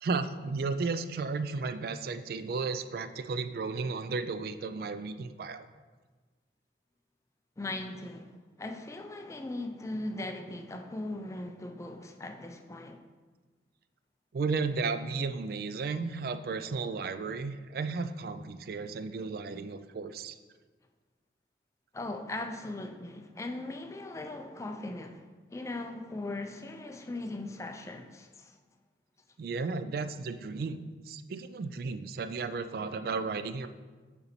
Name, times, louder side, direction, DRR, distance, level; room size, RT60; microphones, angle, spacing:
voice 1, 0.0-5.7 14.3-20.4 29.4-33.7, right 4 dB, 55° right, 0.3 m, -34 dB
voice 2, 7.6-13.0 21.9-28.6, left 2 dB, 15° left, 0.4 m, -39 dB
6.7 x 4.2 x 4.3 m
head